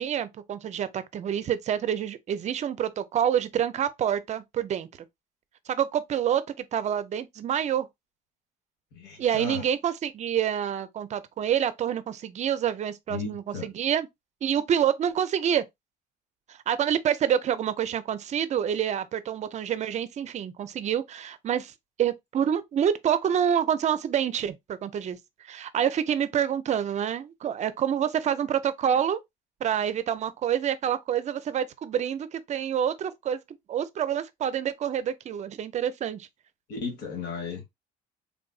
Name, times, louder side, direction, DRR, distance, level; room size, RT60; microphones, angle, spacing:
voice 1, 0.0-4.9 5.7-7.9 9.2-14.1 14.4-15.6 16.5-21.7 22.0-29.2 29.6-33.4 33.7-36.3, right 9 dB, 45° right, 0.5 m, -27 dB
voice 2, 8.9-9.7 13.1-13.7 36.7-37.7, left 5 dB, 75° left, 1.3 m, -35 dB
3.6 x 2.5 x 2.3 m
cardioid pair, 110°, 17 cm